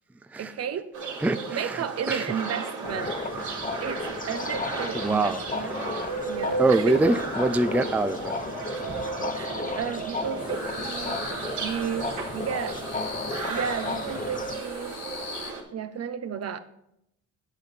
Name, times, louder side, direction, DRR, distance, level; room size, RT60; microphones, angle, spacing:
voice 1, 0.4-0.9 1.5-3.2 3.8-5.9 6.3-7.0 7.7-7.9 8.7-11.2 11.6-12.8 13.5-15.0 15.7-16.6, right 8 dB, 55° right, 11 dB, 0.8 m, -33 dB
sound 1, 0.9-15.6, right 3 dB, 75° right, 2.6 m, -34 dB
voice 2, 1.2-2.3 3.5-3.6 4.9-5.4 6.6-8.4, right 2 dB, 5° right, 10 dB, 0.4 m, -24 dB
sound 2, 2.8-14.6, left 3 dB, 25° left, 1.0 m, -34 dB
sound 3, 10.4-15.5, left 5 dB, 60° left, 1.7 m, -41 dB
8.9 x 8.2 x 4.3 m, 0.79 s
cardioid pair, 90°, 30 cm